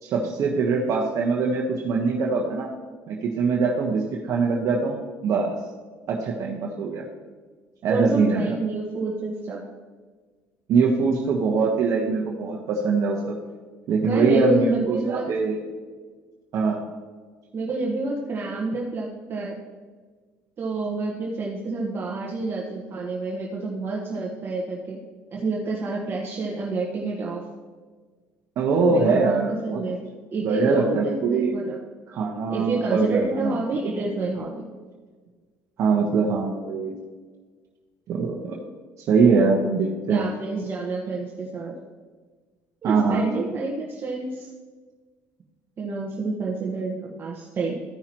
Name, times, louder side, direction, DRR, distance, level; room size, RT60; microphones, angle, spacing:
voice 1, 0.0-2.7 3.1-5.0 5.2-5.6 6.1-7.0 7.8-8.5 10.7-13.4 13.9-15.6 16.5-16.8 28.6-29.8 30.4-31.5 32.1-33.6 33.8-33.9 35.8-36.9 38.1-38.6 39.0-40.3 42.8-43.2, right 4 dB, 55° right, -2 dB, 1.2 m, -22 dB
voice 2, 7.9-9.6 14.0-15.2 17.5-19.6 20.6-25.0 25.3-27.4 28.9-30.0 30.3-31.8 32.5-34.7 40.1-41.7 42.8-44.5 45.8-47.7, right 3 dB, 35° right, -3 dB, 1.4 m, -28 dB
14.5 x 5.7 x 3.0 m, 1.5 s
cardioid pair, 110°, 6 cm